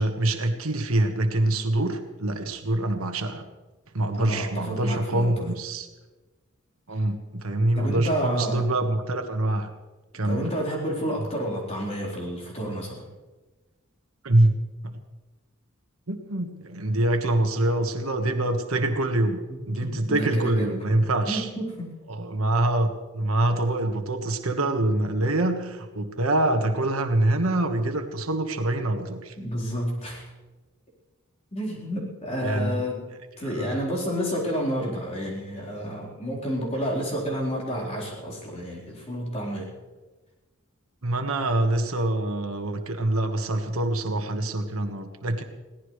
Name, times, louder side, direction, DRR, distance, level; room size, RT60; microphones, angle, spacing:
voice 1, 0.0-3.4 3.9-5.9 6.9-9.7 10.1-10.5 14.2-14.6 14.8-15.0 16.1-19.4 19.7-21.5 22.1-29.3 32.4-32.8 33.5-33.8 41.0-45.4, right 1 dB, 85° right, 5 dB, 1.5 m, -25 dB
voice 2, 4.1-5.5 7.8-8.7 10.2-13.1 19.5-20.8 21.3-21.9 29.4-30.3 31.5-33.1 33.4-39.7, equal, 30° left, -4 dB, 4.3 m, -30 dB
22.0 x 17.0 x 3.3 m, 1.2 s
head